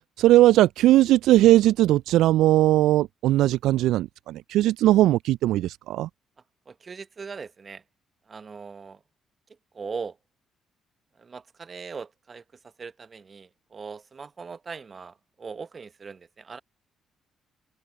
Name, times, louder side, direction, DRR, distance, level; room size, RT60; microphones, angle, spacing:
voice 1, 0.2-6.1, right 15 dB, 70° right, 0.4 m, -19 dB
voice 2, 6.7-7.8 8.3-9.0 9.7-10.2 11.2-12.4 12.8-16.6, right 5 dB, 40° right, 1.2 m, -39 dB
open air
hypercardioid pair, 45°, 0 cm